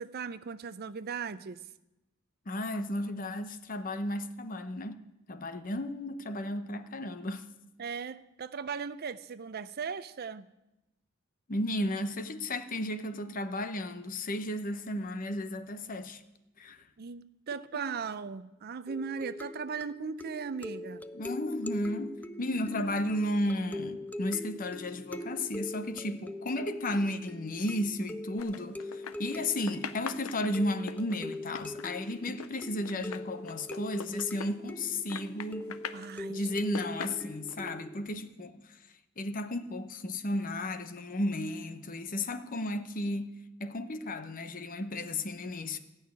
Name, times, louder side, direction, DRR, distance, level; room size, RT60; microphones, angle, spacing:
voice 1, 0.0-1.6 7.8-10.5 17.0-21.0 35.9-36.5, right 6 dB, 50° right, 0.5 m, -38 dB
voice 2, 2.5-5.0 5.3-7.5 11.5-16.2 16.6-16.8 21.1-35.8 36.3-38.8 39.2-45.8, left 1 dB, 40° left, 0.8 m, -34 dB
sound 1, 18.9-38.1, left 1 dB, 10° left, 0.4 m, -42 dB
sound 2, 28.4-29.4 29.7-34.9 35.1-36.1 36.6-37.7, left 6 dB, 80° left, 0.6 m, -42 dB
15.0 x 6.4 x 9.5 m
head